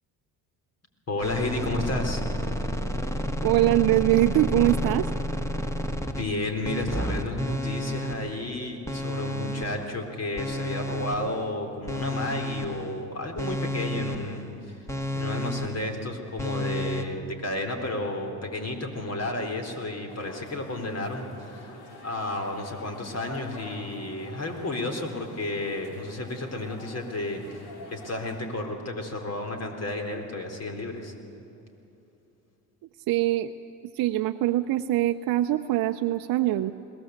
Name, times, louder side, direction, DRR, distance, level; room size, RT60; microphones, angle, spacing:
voice 1, 1.1-2.2 6.2-14.8 15.1-21.8 22.0-27.6 27.9-31.1, left 2 dB, 40° left, 4 dB, 3.9 m, -32 dB
sound 1, 1.2-6.3 6.6-8.5 8.9-10.0 10.4-11.5 11.9-13.0 13.4-14.5 14.9-16.0 16.4-17.0, equal, 5° left, 1.9 m, -31 dB
voice 2, 3.4-5.1 33.1-33.5 33.9-36.7, right 15 dB, 60° right, 5 dB, 0.8 m, -23 dB
sound 2, 20.1-28.5, left 3 dB, 65° left, 3.6 m, -46 dB
21.5 x 18.0 x 8.1 m, 2.9 s
hypercardioid pair, 65°, 41 cm